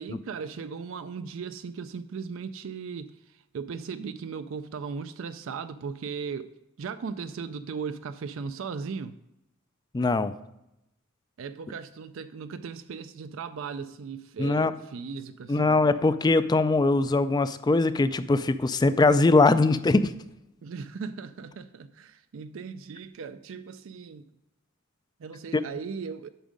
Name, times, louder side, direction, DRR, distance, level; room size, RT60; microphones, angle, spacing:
voice 1, 0.0-6.5 6.8-9.2 11.4-15.8 20.6-24.2 25.2-26.3, right 5 dB, 65° right, 0.4 m, -37 dB
voice 2, 9.9-10.3 14.4-14.7 15.5-20.1, left 3 dB, 20° left, 0.3 m, -21 dB
9.0 x 6.2 x 5.1 m
head